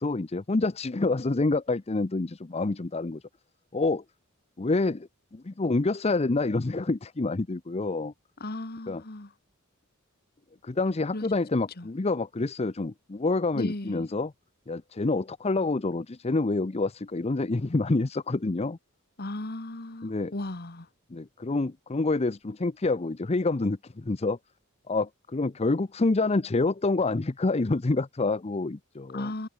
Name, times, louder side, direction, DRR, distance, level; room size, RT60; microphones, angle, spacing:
voice 1, 0.0-3.2 3.7-4.0 4.6-8.1 8.9-9.0 10.6-14.3 14.7-18.8 20.0-20.3 21.1-24.4 24.9-29.3, left 3 dB, 30° left, 0.6 m, -27 dB
voice 2, 8.4-9.3 11.1-11.3 11.8-11.9 13.5-14.1 19.2-20.9 29.1-29.5, left 2 dB, 45° left, 1.8 m, -35 dB
head